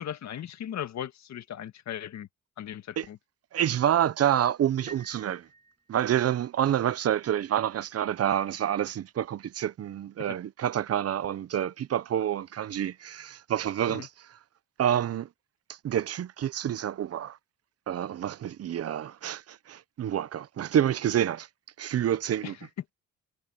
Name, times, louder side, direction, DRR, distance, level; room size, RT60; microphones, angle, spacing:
voice 1, 0.0-2.3 2.6-3.2 10.2-10.4 13.9-14.1 22.4-22.6, left 10 dB, 65° left, 1.8 m, -37 dB
voice 2, 3.5-5.5 5.9-14.1 14.8-15.3 15.8-17.4 17.9-21.5 21.8-22.5, right 10 dB, 55° right, 0.7 m, -28 dB
Piano, 4.9-6.7, right 3 dB, 25° right, 3.8 m, -51 dB
cardioid pair, 90°, 30 cm